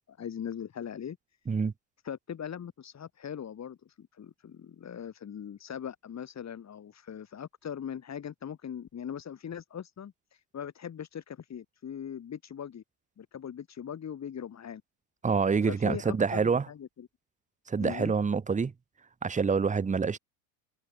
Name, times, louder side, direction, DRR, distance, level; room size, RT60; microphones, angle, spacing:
voice 1, 0.1-1.2 2.0-12.8 13.2-14.8 15.6-17.1 17.8-18.1, left 8 dB, 35° left, 4.3 m, -40 dB
voice 2, 15.2-16.7 17.7-18.7 19.2-20.2, right 5 dB, 15° right, 1.2 m, -26 dB
hypercardioid pair, 85°, 49 cm